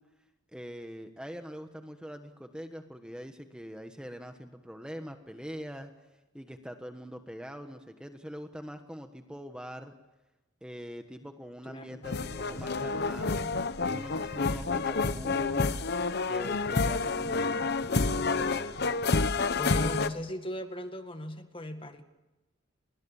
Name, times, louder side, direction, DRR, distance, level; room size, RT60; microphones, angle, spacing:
voice 1, 0.5-5.9 6.3-9.9 10.6-13.4 13.8-15.6 16.3-17.7 18.0-18.6, equal, 5° right, 6 dB, 1.3 m, -43 dB
voice 2, 11.6-12.0 19.6-22.0, left 1 dB, 25° left, 7 dB, 2.0 m, -37 dB
sound 1, 12.0-20.1, left 3 dB, 55° left, 1.0 m, -29 dB
29.5 x 22.5 x 7.2 m, 1.1 s
head